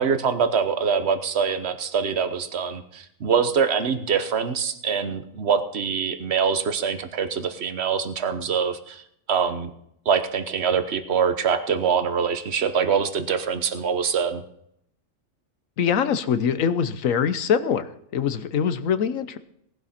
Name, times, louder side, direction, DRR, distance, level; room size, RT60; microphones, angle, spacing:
voice 1, 0.0-9.0 9.3-9.7 10.0-14.4, right 6 dB, 55° right, 9 dB, 1.3 m, -24 dB
voice 2, 15.8-19.4, left 7 dB, 80° left, 12 dB, 1.3 m, -23 dB
18.5 x 11.5 x 4.3 m, 0.75 s
omnidirectional pair, 1.4 m